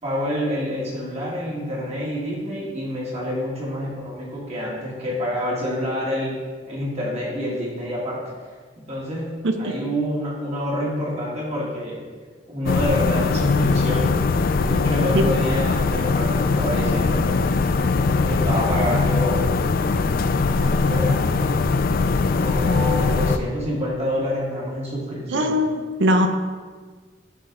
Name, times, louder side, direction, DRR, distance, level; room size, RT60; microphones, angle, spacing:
voice 1, 0.0-6.4 6.7-8.2 8.8-9.3 9.6-12.0 12.5-14.2 14.6-17.4 18.3-19.5 20.6-21.2 22.4-25.5, equal, 35° right, -5 dB, 1.9 m, -27 dB
sound 1, 12.7-23.4, left 4 dB, 50° left, 0.4 m, -21 dB
voice 2, 25.3-26.3, equal, 80° right, 6 dB, 0.7 m, -20 dB
11.0 x 4.1 x 3.8 m, 1.5 s
head